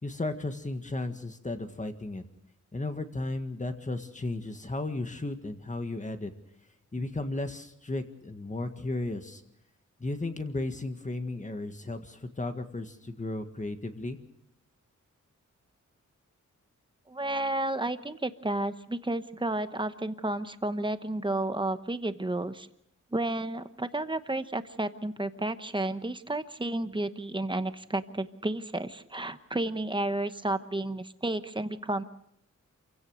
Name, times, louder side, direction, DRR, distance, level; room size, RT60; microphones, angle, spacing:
voice 1, 0.0-2.2 2.7-6.3 6.9-9.4 10.0-14.2, left 2 dB, 25° left, 7 dB, 1.8 m, -34 dB
voice 2, 17.1-22.7 23.1-32.0, right 2 dB, 15° right, 10 dB, 1.0 m, -32 dB
27.5 x 16.5 x 6.4 m, 0.78 s
wide cardioid pair, 130°, 31 cm